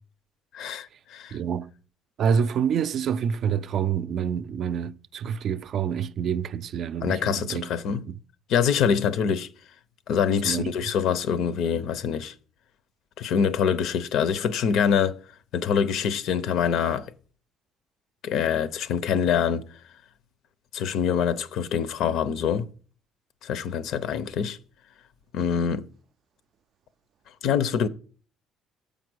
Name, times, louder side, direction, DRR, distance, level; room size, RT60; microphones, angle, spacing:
voice 1, 0.5-1.4 7.0-8.0 8.5-9.5 10.1-12.3 13.2-15.2 15.5-17.1 18.2-19.6 20.7-22.7 23.4-24.6 25.3-25.9 27.4-27.9, left 7 dB, 70° left, 0.7 m, -25 dB
voice 2, 1.3-1.7 2.2-8.2 10.4-10.7, right 7 dB, 50° right, 0.4 m, -27 dB
7.4 x 5.1 x 6.2 m
cardioid pair, 155°, 0 cm